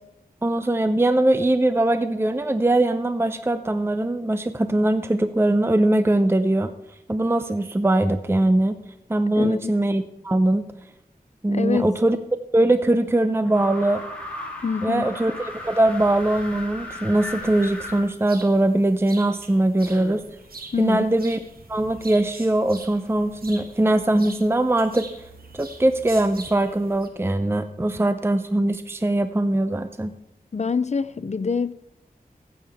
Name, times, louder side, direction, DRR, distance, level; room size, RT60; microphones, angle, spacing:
voice 1, 0.4-6.7 7.1-8.8 9.1-10.6 11.4-12.2 12.5-14.0 14.8-20.2 20.8-21.4 21.7-25.1 25.5-30.1, right 1 dB, 15° right, 0.5 m, -21 dB
voice 2, 9.4-9.7 11.5-11.9 14.6-15.1 20.7-21.1 30.5-31.7, left 5 dB, 45° left, 0.4 m, -25 dB
sound 1, 13.5-18.0, left 1 dB, 10° left, 3.1 m, -36 dB
sound 2, 17.2-27.1, right 3 dB, 75° right, 1.4 m, -44 dB
14.5 x 8.6 x 3.5 m
wide cardioid pair, 80°, 16 cm